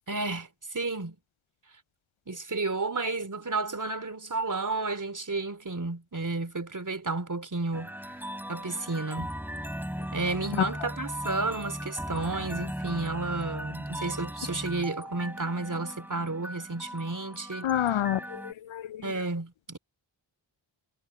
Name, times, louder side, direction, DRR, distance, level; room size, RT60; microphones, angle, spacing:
voice 1, 0.1-1.2 2.3-7.9 8.5-9.3 10.1-18.0 19.0-19.8, right 3 dB, 40° right, 3.3 m, -32 dB
sound 1, 7.7-18.5, equal, 5° right, 6.8 m, -38 dB
voice 2, 17.6-19.0, left 12 dB, 75° left, 0.6 m, -28 dB
cardioid pair, 45°, 48 cm